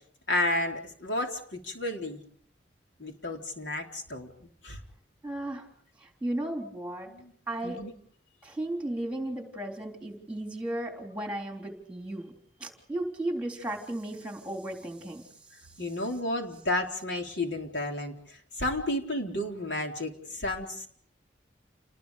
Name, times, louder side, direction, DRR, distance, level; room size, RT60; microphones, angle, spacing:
voice 1, 0.3-2.2 3.0-4.8 7.1-7.3 7.6-7.9 15.8-20.9, left 1 dB, 80° left, 2 dB, 4.0 m, -32 dB
voice 2, 5.2-5.7 6.0-7.1 7.5-7.8 8.4-12.3 12.6-15.3, right 1 dB, 5° right, 2 dB, 3.6 m, -35 dB
29.5 x 20.5 x 5.1 m, 0.63 s
head